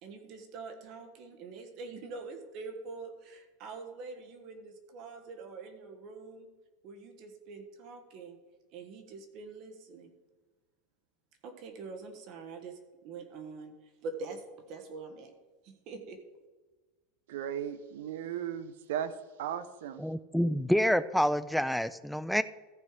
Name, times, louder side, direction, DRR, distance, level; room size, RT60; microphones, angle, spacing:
voice 1, 0.0-6.5 6.8-8.4 8.7-10.1 11.4-15.3 15.6-16.2, right 4 dB, 45° right, 1.4 m, -44 dB
voice 2, 17.3-19.1 19.4-20.0, right 9 dB, 85° right, 0.7 m, -36 dB
voice 3, 20.0-22.4, equal, ahead, 0.3 m, -28 dB
14.5 x 5.5 x 4.8 m
supercardioid pair, 145°, 0 cm